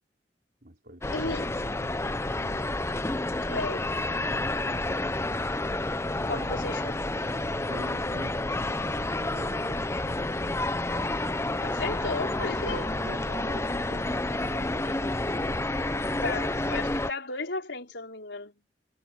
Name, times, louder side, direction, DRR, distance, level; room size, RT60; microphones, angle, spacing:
voice 1, 0.6-1.2 6.1-6.7 7.2-8.4 8.9-10.6 12.6-14.1 14.5-16.4, right 1 dB, 55° right, 5.1 m, -46 dB
sound 1, 1.0-17.1, left 2 dB, 15° left, 0.8 m, -30 dB
voice 2, 1.1-1.5 3.4-4.0 6.3-6.9 11.6-13.0 16.2-18.5, left 3 dB, 85° left, 4.5 m, -34 dB
head